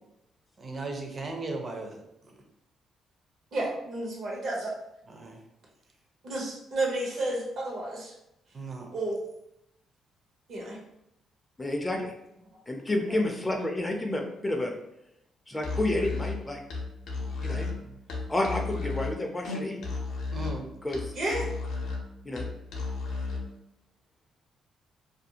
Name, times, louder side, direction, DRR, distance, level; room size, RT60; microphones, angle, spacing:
voice 1, 0.6-2.3 5.1-5.4 8.5-8.9 17.7-18.0 20.3-20.7, right 2 dB, 35° right, 2 dB, 0.6 m, -37 dB
voice 2, 3.5-4.7 6.2-8.1 8.9-9.2 10.5-10.8 13.1-13.2 21.1-21.5, right 2 dB, 65° right, -2 dB, 0.8 m, -31 dB
voice 3, 11.6-12.1 12.7-14.7 15.5-16.6 17.4-17.7 18.3-19.8 20.8-21.0 22.3-22.4, left 1 dB, 15° left, 2 dB, 0.4 m, -30 dB
Musical instrument, 15.6-23.5, left 3 dB, 80° left, 0.5 m, -34 dB
2.5 x 2.3 x 2.7 m, 0.83 s
cardioid pair, 90°, 0 cm